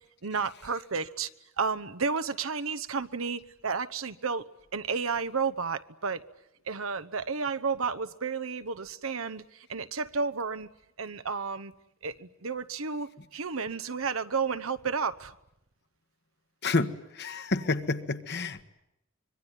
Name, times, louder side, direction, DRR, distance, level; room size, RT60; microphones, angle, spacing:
voice 1, 0.2-1.3 1.6-4.4 4.7-6.2 6.7-10.7 11.0-11.7 12.0-15.3, right 5 dB, 75° right, 1.0 m, -32 dB
voice 2, 16.6-18.6, left 3 dB, 55° left, 1.5 m, -29 dB
25.5 x 23.0 x 9.8 m
head